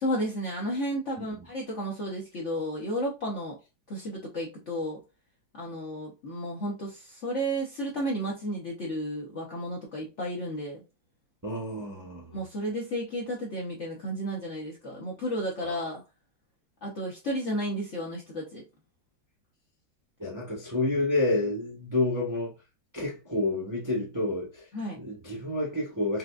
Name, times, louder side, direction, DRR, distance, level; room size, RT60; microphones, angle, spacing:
voice 1, 0.0-3.6 3.9-5.0 5.6-10.8 12.3-16.0 16.8-18.6 24.7-25.0, equal, 55° left, 0.8 m, -32 dB
voice 2, 11.4-12.4 15.6-15.8 20.2-22.5 22.9-24.7 24.9-26.2, left 2 dB, 15° right, 0.6 m, -29 dB
4.9 x 2.3 x 2.3 m
omnidirectional pair, 2.1 m